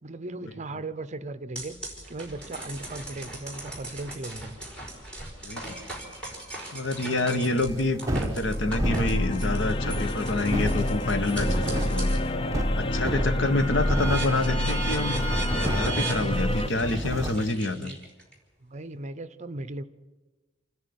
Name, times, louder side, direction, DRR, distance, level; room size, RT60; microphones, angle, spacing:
voice 1, 0.0-4.6 16.1-17.1 17.7-18.0 18.6-19.8, right 2 dB, 35° right, 13 dB, 0.8 m, -38 dB
sound 1, 1.6-12.3 12.7-18.3, right 2 dB, 5° left, 5.2 m, -38 dB
voice 2, 5.4-5.8 6.7-12.2 12.8-15.1 15.5-17.9, left 2 dB, 70° left, 10 dB, 1.3 m, -27 dB
sound 2, 7.6-17.5, right 1 dB, 15° right, 1.2 m, -33 dB
sound 3, 8.4-16.7, left 1 dB, 30° left, 0.6 m, -28 dB
28.5 x 11.0 x 9.6 m, 1.2 s
head